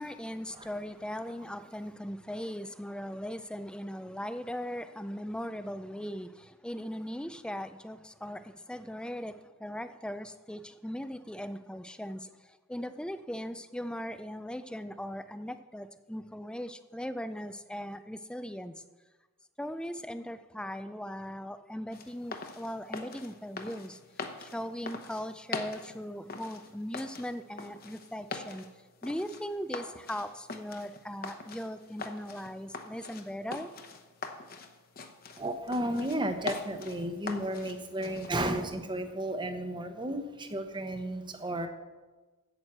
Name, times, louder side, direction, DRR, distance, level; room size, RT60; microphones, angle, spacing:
voice 1, 0.0-18.8 19.6-24.0 24.4-28.7 29.0-33.7, equal, 5° left, 0.4 m, -39 dB
sound 1, 21.9-38.5, left 4 dB, 40° left, 0.9 m, -43 dB
voice 2, 35.4-41.7, right 1 dB, 20° right, 0.9 m, -33 dB
9.0 x 8.1 x 7.3 m
head